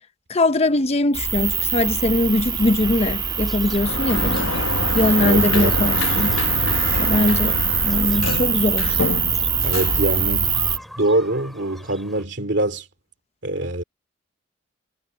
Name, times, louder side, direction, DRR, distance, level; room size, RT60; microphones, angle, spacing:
voice 1, 0.3-4.5 4.9-6.3 7.0-7.6 7.8-9.0, left 2 dB, 30° left, 0.7 m, -21 dB
sound 1, 1.1-10.8, right 6 dB, 25° right, 1.6 m, -23 dB
sound 2, 2.8-12.2, equal, ahead, 3.5 m, -43 dB
Sliding door, 3.7-10.8, left 3 dB, 90° left, 1.3 m, -27 dB
voice 2, 5.2-5.7 9.6-10.6 11.0-12.9 13.4-13.8, right 1 dB, 60° right, 2.8 m, -23 dB
head